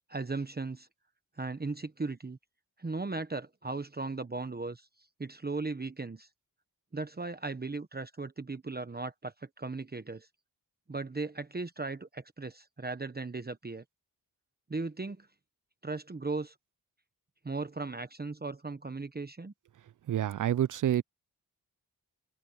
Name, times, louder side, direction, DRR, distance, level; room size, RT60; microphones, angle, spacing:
voice 1, 0.1-0.9 1.4-2.4 2.8-4.9 5.2-6.3 6.9-10.3 10.9-13.8 14.7-15.3 15.8-16.5 17.4-19.5, right 3 dB, 25° right, 1.1 m, -37 dB
voice 2, 20.1-21.0, right 11 dB, 60° right, 0.5 m, -28 dB
open air
cardioid pair, 60°, 36 cm